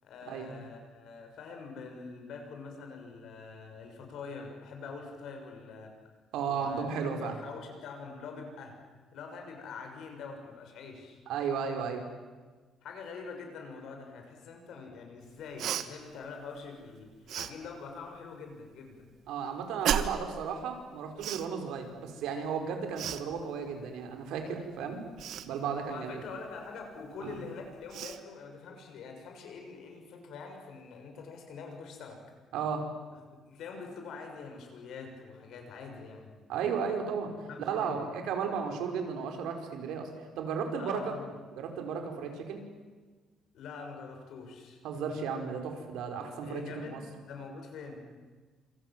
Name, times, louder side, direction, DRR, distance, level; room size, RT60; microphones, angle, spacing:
voice 1, 0.0-5.9 6.4-6.8 7.2-8.8 9.1-11.2 12.8-19.1 25.9-32.2 33.5-36.3 37.5-38.0 40.8-41.3 43.5-44.8 46.4-48.1, left 4 dB, 60° left, 3 dB, 6.5 m, -44 dB
voice 2, 6.3-7.4 11.3-12.0 19.3-25.0 25.4-26.2 27.2-27.4 32.5-32.9 36.5-40.1 40.4-41.1 41.6-42.6 44.8-46.6 46.9-47.0, right 6 dB, 80° right, 5 dB, 4.9 m, -34 dB
Cough, 15.6-15.9 17.3-17.5 19.8-20.3 21.2-21.5 23.0-23.2 25.2-25.5 27.3-27.4 27.9-28.2, right 9 dB, 55° right, 1.4 m, -32 dB
27.5 x 27.5 x 7.6 m, 1.4 s
cardioid pair, 180°, 0 cm